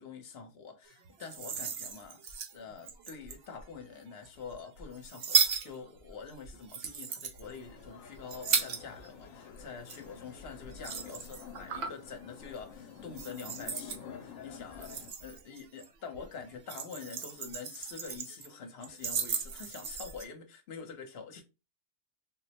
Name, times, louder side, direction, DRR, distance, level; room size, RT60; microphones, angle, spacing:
voice 1, 0.0-21.4, left 5 dB, 55° left, 0.9 m, -46 dB
sound 1, 1.0-3.6 4.3-9.3 9.5-12.1 12.4-12.7 13.1-14.0 14.6-15.9 16.1-18.5 18.8-20.2, right 6 dB, 60° right, 0.8 m, -35 dB
sound 2, 7.4-15.1, left 8 dB, 90° left, 1.0 m, -49 dB
4.0 x 2.1 x 2.8 m
omnidirectional pair, 1.3 m